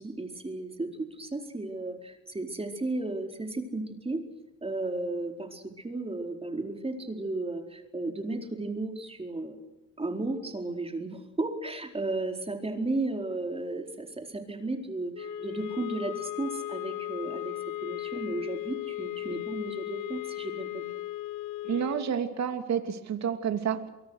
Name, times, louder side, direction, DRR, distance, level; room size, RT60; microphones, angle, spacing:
voice 1, 0.0-4.2 4.6-9.5 10.0-17.6 17.8-20.8, right 2 dB, 20° right, 4 dB, 4.4 m, -34 dB
sound 1, 15.1-22.1, left 14 dB, 80° left, 1.9 m, -36 dB
voice 2, 21.6-23.9, right 8 dB, 65° right, 7 dB, 2.8 m, -29 dB
23.5 x 23.5 x 6.5 m, 0.97 s
cardioid pair, 90°, 30 cm